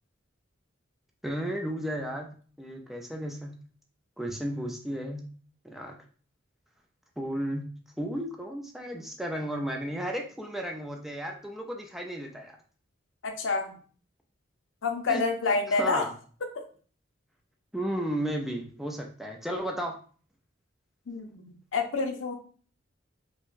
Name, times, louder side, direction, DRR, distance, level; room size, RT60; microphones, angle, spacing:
voice 1, 1.2-2.3 2.6-3.5 4.2-5.2 5.6-6.0 7.2-7.7 8.0-12.5 15.1-15.2 15.7-16.1 17.7-19.9, equal, ahead, 1 dB, 0.4 m, -33 dB
voice 2, 13.2-13.7 14.8-16.1 16.5-16.6 21.1-22.3, left 4 dB, 90° left, 4 dB, 0.6 m, -28 dB
4.6 x 2.2 x 2.5 m, 0.42 s
head